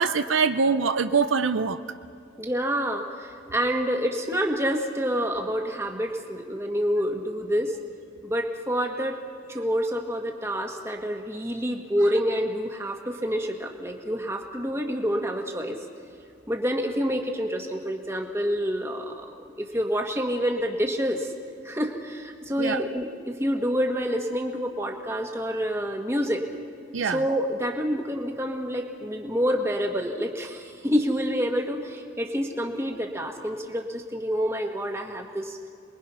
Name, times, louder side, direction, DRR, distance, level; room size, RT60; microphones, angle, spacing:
voice 1, 0.0-1.8 22.6-22.8 26.9-27.2, right 5 dB, 75° right, 10 dB, 0.6 m, -23 dB
voice 2, 2.4-7.7 8.2-9.2 9.5-15.8 16.5-21.3 21.6-26.4 27.0-35.6, equal, 15° right, 2 dB, 1.6 m, -28 dB
28.5 x 21.5 x 5.7 m, 2.6 s
head